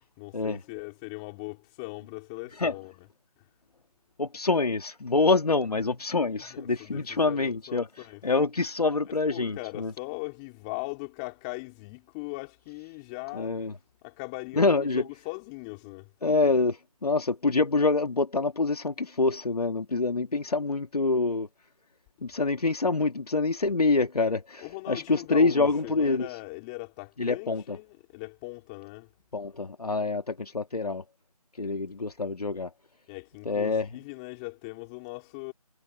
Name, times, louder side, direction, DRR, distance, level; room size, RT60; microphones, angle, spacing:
voice 1, 0.2-3.1 6.5-8.2 9.3-13.6 14.0-16.1 24.6-29.1 33.1-35.5, left 28 dB, 10° left, 4.2 m, -39 dB
voice 2, 4.2-7.9 8.2-9.9 13.3-13.7 14.5-15.0 16.2-21.5 22.2-26.3 27.2-27.8 29.3-31.0 31.6-32.7 33.5-33.9, left 3 dB, 70° left, 2.3 m, -26 dB
figure-of-eight pair, 170°, 20 cm